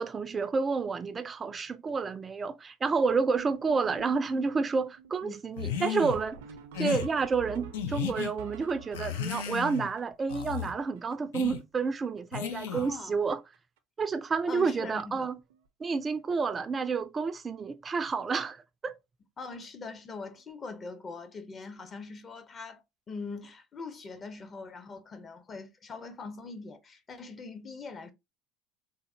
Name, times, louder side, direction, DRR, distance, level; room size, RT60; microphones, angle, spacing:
voice 1, 0.0-6.4 6.8-13.4 14.0-15.4 15.8-19.0, right 5 dB, 30° right, 0.3 m, -30 dB
sound 1, 3.4-11.6 11.9-12.0 12.2-12.4 12.7-13.2 13.5-13.8 14.6-14.7 15.1-15.2 15.5-15.7 17.9-18.0 20.3-20.4, right 7 dB, 80° right, 0.5 m, -49 dB
sound 2, 5.6-6.2 6.7-7.1 7.7-8.3 8.9-9.9 10.3-10.7 11.3-11.6 12.3-12.9, left 8 dB, 85° left, 0.4 m, -34 dB
voice 2, 12.7-13.1 14.5-15.3 19.4-28.1, left 4 dB, 35° left, 0.7 m, -42 dB
3.7 x 2.0 x 2.7 m
hypercardioid pair, 80°, 0 cm